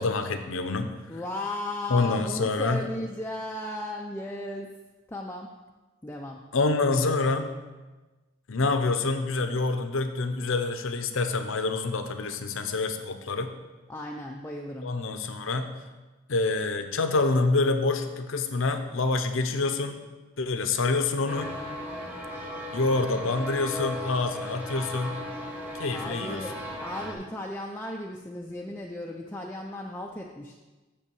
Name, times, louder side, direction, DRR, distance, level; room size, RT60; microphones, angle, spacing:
voice 1, 0.0-0.9 1.9-2.9 6.5-7.5 8.5-13.5 14.8-15.7 16.3-20.0 20.4-21.5 22.7-25.2 25.8-26.4, left 3 dB, 70° left, 8 dB, 0.7 m, -26 dB
voice 2, 1.1-4.8 5.1-5.5 6.0-6.4 13.9-14.9 25.9-30.5, left 1 dB, 10° left, 0 dB, 0.4 m, -36 dB
sound 1, 21.3-27.1, left 1 dB, 10° right, 1.0 m, -36 dB
6.7 x 5.5 x 6.9 m, 1.2 s
head